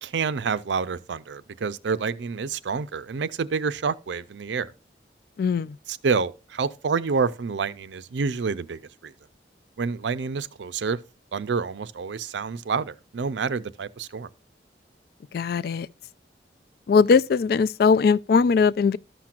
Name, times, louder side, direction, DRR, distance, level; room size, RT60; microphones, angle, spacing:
voice 1, 0.0-4.7 5.9-9.1 9.8-11.0 11.3-14.3, right 5 dB, 80° right, 0.5 m, -28 dB
voice 2, 5.4-5.7 15.3-15.9 16.9-19.0, left 5 dB, 55° left, 0.3 m, -20 dB
13.5 x 5.9 x 2.4 m
head